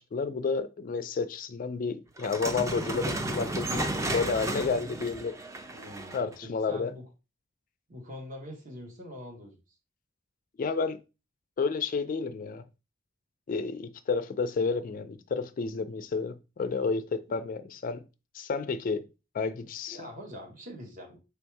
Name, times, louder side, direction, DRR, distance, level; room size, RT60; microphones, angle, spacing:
voice 1, 0.0-5.4 6.1-6.9 10.6-11.0 11.6-12.6 13.5-18.0 18.3-19.1 19.3-20.1, left 4 dB, 45° left, 0.3 m, -31 dB
sound 1, 2.2-6.3, right 2 dB, 15° right, 0.4 m, -33 dB
voice 2, 5.7-7.1 7.9-9.6 17.3-17.4 19.9-21.2, equal, 45° right, 1.2 m, -44 dB
3.4 x 2.6 x 4.6 m
head